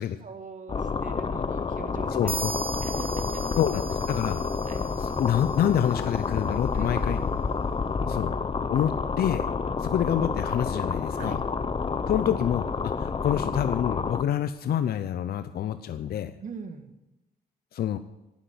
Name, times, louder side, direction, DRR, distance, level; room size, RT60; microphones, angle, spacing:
voice 1, 0.2-3.6 4.7-4.9 6.7-7.4 11.2-11.4 16.4-16.9, right 5 dB, 50° right, 7 dB, 1.9 m, -42 dB
sound 1, 0.7-14.2, left 5 dB, 35° left, 0.8 m, -29 dB
voice 2, 2.1-2.6 3.6-4.4 5.2-7.2 8.1-8.3 8.7-9.5 9.8-11.4 12.1-16.3 17.7-18.0, left 10 dB, 70° left, 11 dB, 0.7 m, -27 dB
sound 2, 2.3-5.9, right 4 dB, 35° right, 0.9 m, -38 dB
11.5 x 9.1 x 9.5 m, 0.97 s
cardioid pair, 85°, 16 cm